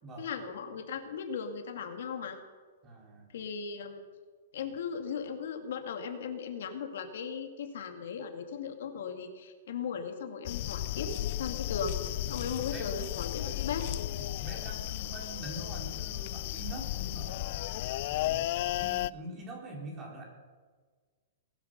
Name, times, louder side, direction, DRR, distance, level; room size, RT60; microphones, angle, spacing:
voice 1, 0.2-2.4 3.3-4.0 4.5-12.0 12.3-13.9 18.3-18.4, left 6 dB, 65° left, 5 dB, 2.1 m, -37 dB
voice 2, 2.8-3.3 12.3-12.9 13.4-13.6 14.2-17.5 18.1-20.3, right 1 dB, 20° right, -1 dB, 4.1 m, -44 dB
sound 1, 10.5-19.1, left 15 dB, 45° left, 0.4 m, -34 dB
20.0 x 10.5 x 6.7 m, 1.5 s
hypercardioid pair, 165°, 0 cm